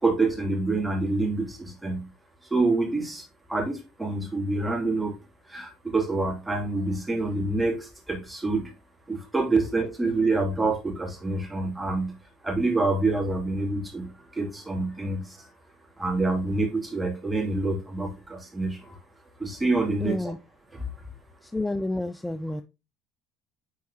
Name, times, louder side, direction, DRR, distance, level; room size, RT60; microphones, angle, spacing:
voice 1, 0.0-2.1 2.5-5.1 5.5-8.7 9.1-12.1 12.4-15.5 16.0-19.0 19.4-20.3 20.7-20.8, right 3 dB, 15° right, 2.8 m, -27 dB
voice 2, 20.0-20.4 21.5-22.6, left 2 dB, 10° left, 0.4 m, -29 dB
9.3 x 4.6 x 2.9 m
hypercardioid pair, 75°, 0 cm